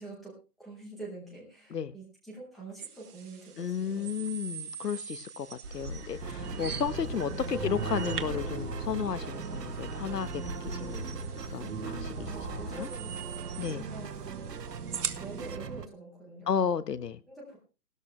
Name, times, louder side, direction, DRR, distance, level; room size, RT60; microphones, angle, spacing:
voice 1, 0.0-4.2 7.3-8.0 12.2-14.5 15.1-16.5 17.3-17.6, right 2 dB, ahead, -5 dB, 0.7 m, -45 dB
sound 1, 2.8-15.6, right 7 dB, 70° right, 1.7 m, -44 dB
voice 2, 3.6-11.2 11.5-12.9 13.6-13.9 16.5-17.2, left 7 dB, 85° left, 15 dB, 1.4 m, -33 dB
sound 2, 5.6-12.8, right 2 dB, 55° right, 5.6 m, -39 dB
sound 3, 6.2-15.9, right 6 dB, 90° right, 1.3 m, -40 dB
16.0 x 12.5 x 3.2 m, 0.33 s
hypercardioid pair, 165°, 47 cm